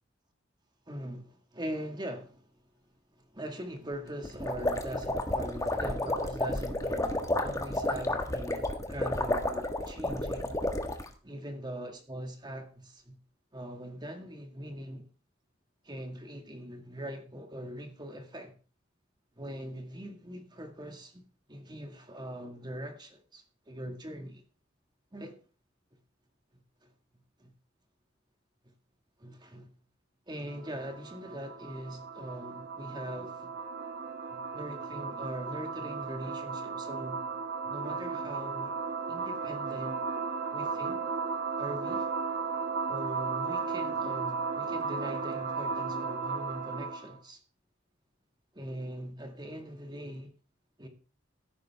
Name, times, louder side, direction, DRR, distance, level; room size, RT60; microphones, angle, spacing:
voice 1, 0.9-2.5 3.1-10.5 11.2-13.2 13.5-15.0 15.8-18.6 19.4-24.4 25.1-25.4 26.8-26.9 27.4-27.5 29.2-29.7 30.3-33.5 34.3-38.7 39.1-40.0 40.5-41.0 41.6-42.1 42.9-47.4 48.5-50.3 50.8-50.9, equal, 25° right, 1.8 m, -42 dB
sound 1, 4.2-11.1, left 1 dB, 15° left, 1.5 m, -31 dB
sound 2, 30.5-47.1, right 5 dB, 55° right, 2.3 m, -35 dB
16.5 x 9.4 x 3.5 m
head